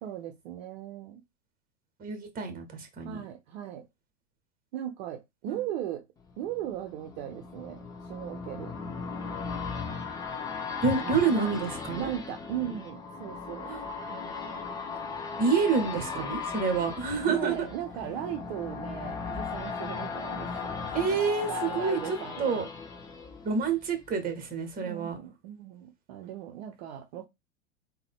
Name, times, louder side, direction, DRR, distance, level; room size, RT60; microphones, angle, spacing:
voice 1, 0.0-1.2 3.0-3.9 4.7-6.1 6.4-7.8 8.1-8.7 10.9-11.5 12.0-13.7 14.1-14.6 15.7-16.3 17.3-22.6 24.8-27.3, right 11 dB, 50° right, 0.7 m, -38 dB
voice 2, 2.0-3.2 5.5-5.6 10.8-12.1 13.6-13.8 15.4-17.5 20.9-22.6 23.4-25.2, right 5 dB, 20° right, 1.1 m, -28 dB
sound 1, 6.3-24.1 24.5-24.6, left 5 dB, 10° left, 0.4 m, -37 dB
3.7 x 2.3 x 3.6 m
hypercardioid pair, 100°, 39 cm